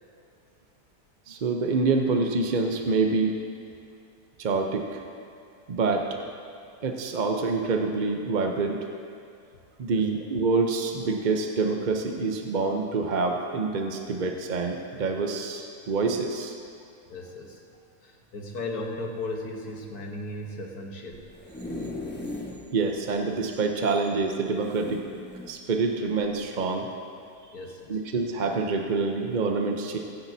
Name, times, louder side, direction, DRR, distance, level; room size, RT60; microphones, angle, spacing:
voice 1, 1.3-3.4 4.4-5.0 5.7-6.0 6.8-8.9 9.8-16.6 22.7-25.1 25.5-26.9 27.9-30.0, right 4 dB, 50° right, 3 dB, 0.6 m, -26 dB
voice 2, 17.1-17.6 18.0-21.3 27.5-28.0, left 2 dB, 70° left, 1 dB, 1.6 m, -36 dB
sound 1, 21.1-22.6 23.1-23.2 23.4-23.5 24.6-25.5 26.2-26.4, left 2 dB, 10° left, 1.0 m, -37 dB
22.5 x 10.0 x 2.7 m, 2.4 s
omnidirectional pair, 1.7 m